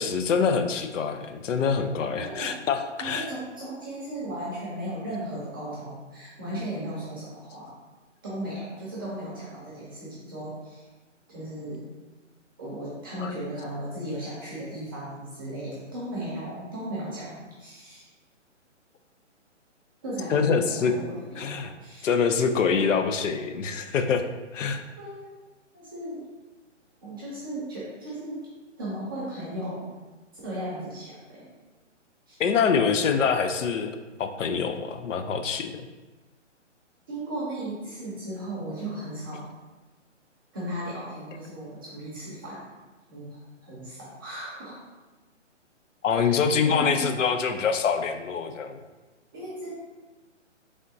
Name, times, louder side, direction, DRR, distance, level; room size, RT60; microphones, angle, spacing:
voice 1, 0.0-3.3 13.2-13.3 20.3-20.9 21.4-21.7 22.0-24.2 24.5-24.8 32.4-33.9 34.2-35.9 46.0-48.8, left 6 dB, 80° left, 7 dB, 0.5 m, -25 dB
voice 2, 3.0-7.8 8.2-10.9 11.3-11.9 12.6-18.0 20.0-22.0 25.0-25.3 25.7-26.2 27.0-28.4 28.8-29.9 30.4-31.5 32.3-32.4 37.1-39.5 40.5-42.8 43.1-44.7 46.1-46.4 46.7-47.2 49.3-49.7, right 1 dB, 20° right, -8 dB, 0.6 m, -36 dB
3.7 x 3.5 x 2.6 m, 1.2 s
hypercardioid pair, 155°, 37 cm